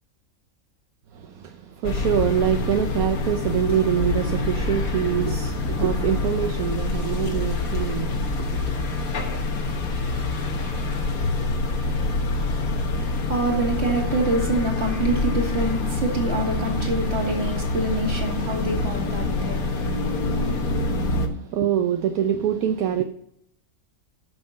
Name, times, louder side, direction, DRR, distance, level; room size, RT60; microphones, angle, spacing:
voice 1, 1.1-8.8 21.1-23.0, right 9 dB, 75° right, 1.2 m, -25 dB
sound 1, 1.8-21.3, left 3 dB, 70° left, 1.7 m, -26 dB
voice 2, 9.5-20.3, right 2 dB, 45° right, 2.4 m, -28 dB
9.5 x 6.5 x 5.6 m
omnidirectional pair, 1.5 m